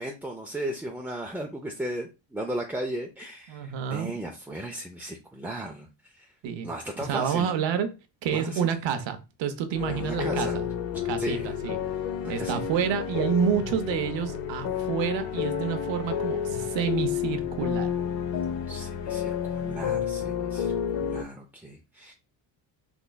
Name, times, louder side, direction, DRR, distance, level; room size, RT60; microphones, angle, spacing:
voice 1, 0.0-6.3 6.6-7.5 8.3-8.7 9.9-10.6 11.2-11.5 12.2-12.6 18.7-22.1, right 1 dB, 5° right, 0.4 m, -36 dB
voice 2, 3.5-4.1 6.4-6.7 7.1-7.9 8.2-10.5 11.1-11.8 12.3-17.9, right 8 dB, 70° right, 0.8 m, -28 dB
sound 1, 9.7-21.2, left 8 dB, 70° left, 0.7 m, -30 dB
3.6 x 3.0 x 2.2 m
cardioid pair, 85°, 47 cm